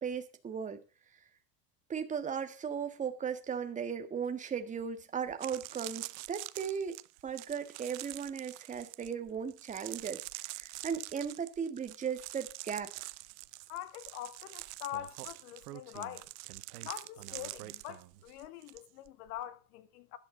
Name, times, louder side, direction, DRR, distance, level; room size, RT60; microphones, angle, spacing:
voice 1, 0.0-0.8 1.9-13.1, right 7 dB, 15° right, 1.6 m, -37 dB
sound 1, 4.8-4.9 5.3-18.8 19.1-19.4, right 23 dB, 45° right, 0.7 m, -46 dB
voice 2, 13.7-16.3 16.8-20.2, left 12 dB, 70° left, 2.3 m, -44 dB
Speech, 14.9-18.3, right 15 dB, 75° right, 1.6 m, -49 dB
15.5 x 10.5 x 3.9 m
supercardioid pair, 145°, 47 cm